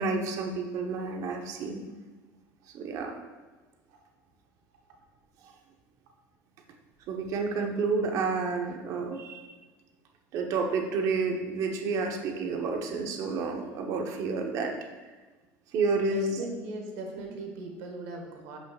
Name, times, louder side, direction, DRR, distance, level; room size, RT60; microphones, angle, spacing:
voice 1, 0.0-1.8 2.7-3.1 5.4-5.5 7.1-9.5 10.3-14.7 15.7-16.4, right 4 dB, 60° right, 3 dB, 1.1 m, -30 dB
voice 2, 16.1-18.6, right 3 dB, 85° right, 2 dB, 1.4 m, -39 dB
11.0 x 6.2 x 2.5 m, 1.3 s
supercardioid pair, 115°, 7 cm